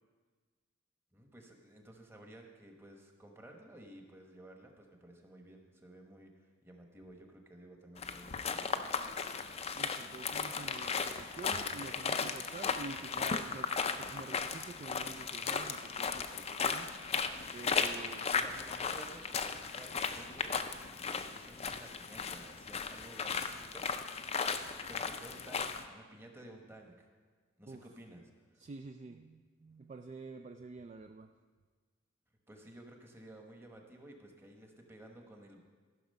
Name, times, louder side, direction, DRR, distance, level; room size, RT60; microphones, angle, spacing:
voice 1, 1.1-8.9 17.8-20.5 21.0-23.9 24.9-27.1 27.6-28.6 32.5-35.6, right 1 dB, 10° right, 2 dB, 1.1 m, -54 dB
sound 1, 8.0-25.8, left 5 dB, 30° left, 0.4 m, -36 dB
voice 2, 9.8-16.9 17.5-18.2 27.6-27.9 28.6-31.3, right 3 dB, 35° right, 6 dB, 0.3 m, -48 dB
14.0 x 5.9 x 5.4 m, 1.5 s
head